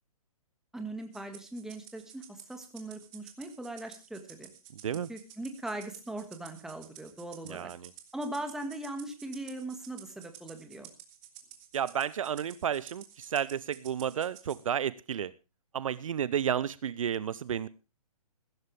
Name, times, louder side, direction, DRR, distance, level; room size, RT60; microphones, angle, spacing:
voice 1, 0.7-4.5 5.1-7.7 8.1-10.9, right 1 dB, ahead, 5 dB, 1.9 m, -40 dB
Rattle (instrument), 1.1-14.6, right 11 dB, 30° right, 2.6 m, -52 dB
voice 2, 7.4-7.9 11.7-15.3 15.7-17.7, right 9 dB, 60° right, 18 dB, 0.7 m, -32 dB
16.0 x 14.0 x 3.4 m, 0.30 s
hypercardioid pair, 135°, 19 cm